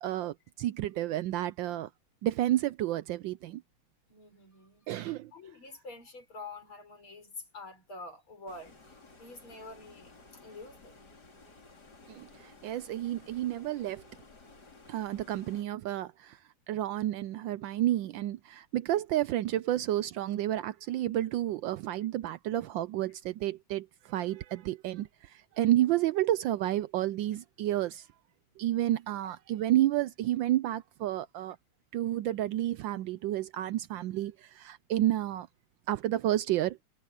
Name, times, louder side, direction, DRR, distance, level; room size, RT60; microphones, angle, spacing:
voice 1, 0.0-1.9 2.2-3.6 4.9-5.3 12.1-12.3 12.6-14.0 14.9-16.4 16.7-28.1 28.6-31.6 31.9-35.5 35.9-36.8, right 13 dB, 75° right, 1.1 m, -30 dB
voice 2, 4.1-10.1 10.4-11.0 25.7-26.0, left 2 dB, 75° left, 7.2 m, -47 dB
Stream, 8.5-15.7, left 3 dB, 45° left, 4.0 m, -55 dB
omnidirectional pair, 2.3 m